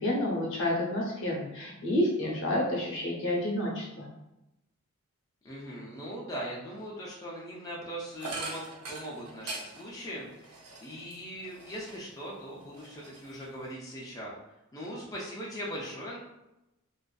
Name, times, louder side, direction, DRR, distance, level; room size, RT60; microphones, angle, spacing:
voice 1, 0.0-4.1, left 1 dB, 60° left, -2 dB, 0.7 m, -29 dB
voice 2, 5.4-14.4 14.7-16.2, equal, 15° left, -4 dB, 0.4 m, -40 dB
sound 1, 8.2-12.2 12.6-13.7, right 3 dB, 75° right, 0.6 m, -42 dB
2.4 x 2.4 x 2.2 m, 0.92 s
head